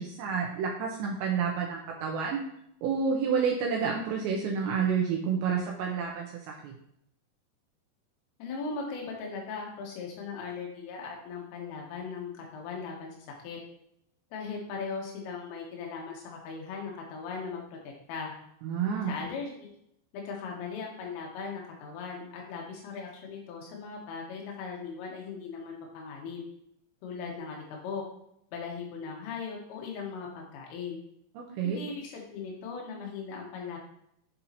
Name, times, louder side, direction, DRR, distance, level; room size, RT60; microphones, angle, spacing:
voice 1, 0.0-2.4 2.8-6.7 18.6-19.1 31.4-31.8, right 6 dB, 85° right, -1 dB, 2.6 m, -29 dB
voice 2, 8.4-13.2 13.4-13.6 14.3-18.3 19.0-19.7 20.1-26.4 27.0-28.0 28.5-31.0 31.6-33.8, left 5 dB, 90° left, -1 dB, 3.8 m, -38 dB
9.8 x 4.1 x 2.8 m, 0.75 s
omnidirectional pair, 5.8 m